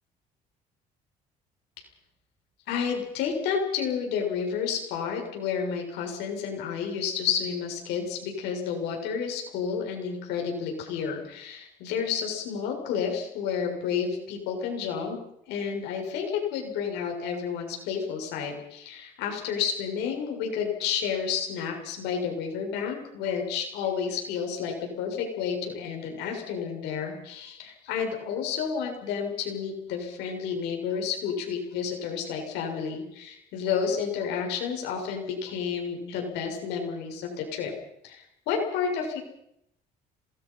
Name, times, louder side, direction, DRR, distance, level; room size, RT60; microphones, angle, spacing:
voice 1, 2.7-15.2 15.5-37.7 38.0-39.2, left 7 dB, 90° left, 2 dB, 6.9 m, -30 dB
27.0 x 20.0 x 5.8 m, 0.78 s
cardioid pair, 110°, 17 cm